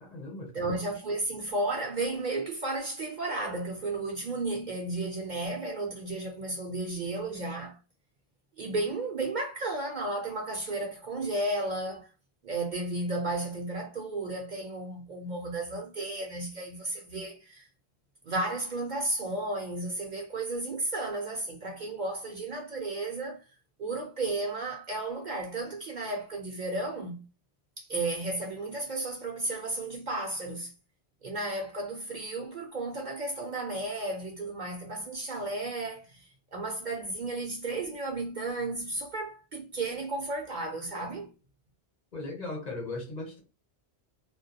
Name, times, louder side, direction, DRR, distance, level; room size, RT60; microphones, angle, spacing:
voice 1, 0.0-0.7 42.1-43.4, left 2 dB, 45° left, 0.9 m, -38 dB
voice 2, 0.5-7.8 8.6-12.1 12.4-17.7 18.3-23.4 23.8-27.2 27.8-30.7 31.2-41.3, right 2 dB, 55° right, 0.6 m, -33 dB
2.2 x 2.1 x 2.7 m
omnidirectional pair, 1.1 m